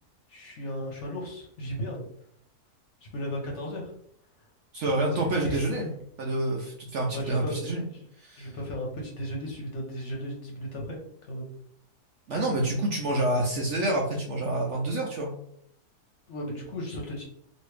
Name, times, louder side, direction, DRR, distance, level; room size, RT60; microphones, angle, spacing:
voice 1, 0.3-2.1 3.1-3.9 4.4-4.5 5.0-5.9 7.1-7.5 7.9-8.0 8.4-11.5 16.3-17.2, equal, 55° left, -1 dB, 1.0 m, -35 dB
voice 2, 4.7-5.9 6.2-7.8 8.2-8.5 12.3-15.3, right 1 dB, 65° right, 0 dB, 0.7 m, -28 dB
3.0 x 2.6 x 3.1 m, 0.69 s
omnidirectional pair, 1.6 m